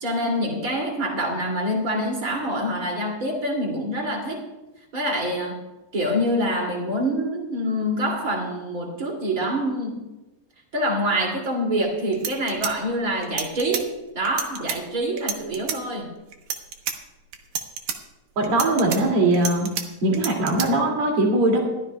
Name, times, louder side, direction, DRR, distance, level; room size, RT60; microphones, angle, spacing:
voice 1, 0.0-4.4 4.9-5.6 5.9-10.0 10.7-16.1, equal, 30° right, 0 dB, 2.8 m, -26 dB
sound 1, 11.8-11.9 12.1-13.8 14.3-14.8 15.2-15.8 16.3-17.0 17.3-18.0 18.4-19.8 20.1-20.7, right 7 dB, 85° right, 2.6 m, -29 dB
voice 2, 18.4-19.7 20.0-21.6, right 2 dB, 50° right, 0 dB, 3.2 m, -20 dB
22.0 x 15.0 x 2.3 m, 1.0 s
omnidirectional pair, 3.4 m